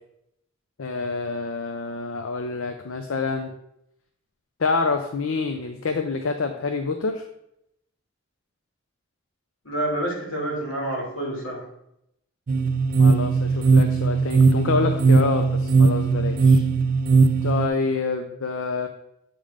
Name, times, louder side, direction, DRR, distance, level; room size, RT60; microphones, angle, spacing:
voice 1, 0.8-3.5 4.6-7.2 13.0-16.6 17.4-18.9, left 4 dB, 70° left, 6 dB, 0.6 m, -27 dB
voice 2, 9.6-11.7, right 1 dB, 90° left, -2 dB, 2.5 m, -28 dB
sound 1, 12.5-17.7, right 4 dB, 40° right, 0.4 m, -18 dB
8.6 x 3.8 x 4.9 m, 0.79 s
head